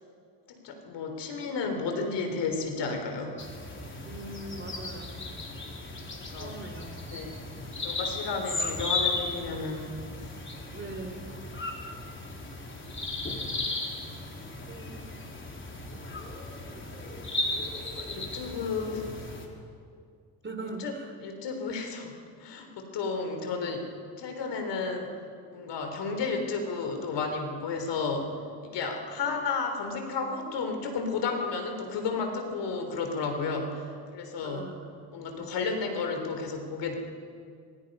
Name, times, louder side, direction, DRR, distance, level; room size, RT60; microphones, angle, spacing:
voice 1, 0.5-3.3 6.3-6.6 7.1-7.4 7.8-9.9 13.4-13.6 18.0-19.0 20.6-20.9 21.2-22.1 22.4-23.9 24.2-25.1 25.5-28.3 28.6-33.8 34.1-34.7 35.1-36.9, left 4 dB, 60° left, 5 dB, 4.0 m, -32 dB
sound 1, 3.4-19.5, left 2 dB, 25° left, 4.1 m, -36 dB
voice 2, 4.0-5.3 6.4-7.0 10.7-11.3 14.7-15.0 16.6-16.8 20.4-21.1 23.2-23.5 34.4-35.5, right 2 dB, 25° right, 5 dB, 3.7 m, -42 dB
25.5 x 23.0 x 5.6 m, 2.3 s
supercardioid pair, 80°, 47 cm